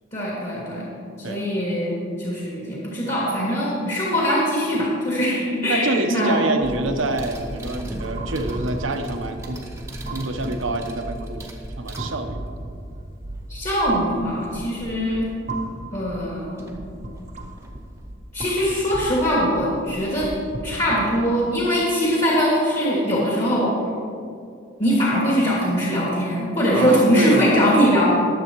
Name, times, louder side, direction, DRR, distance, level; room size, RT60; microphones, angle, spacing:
voice 1, 0.1-0.9 1.2-6.4 13.5-15.3 15.9-16.8 18.3-20.3 20.6-23.7 24.8-28.0, equal, 35° left, -7 dB, 2.4 m, -22 dB
voice 2, 5.7-9.6 10.1-11.5 11.8-12.4 26.7-27.6, right 2 dB, 85° right, 5 dB, 1.0 m, -26 dB
sound 1, 6.6-12.6 15.1-15.2 16.6-16.8 17.2-18.1, right 1 dB, 15° right, 1.1 m, -36 dB
sound 2, 7.0-21.7, right 2 dB, 35° right, 0.9 m, -37 dB
21.5 x 7.7 x 3.1 m, 2.3 s
head